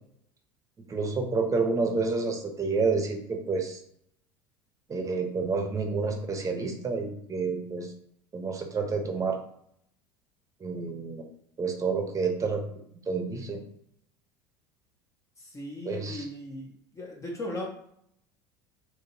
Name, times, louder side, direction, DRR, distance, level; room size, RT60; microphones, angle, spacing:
voice 1, 0.9-3.8 4.9-7.9 8.3-9.4 10.6-11.2 11.6-12.6 13.1-13.6 15.8-16.3, right 4 dB, 25° right, 3 dB, 0.9 m, -29 dB
voice 2, 15.4-17.7, left 1 dB, 25° left, -1 dB, 1.0 m, -38 dB
3.9 x 2.8 x 2.8 m, 0.70 s
hypercardioid pair, 75°, 12 cm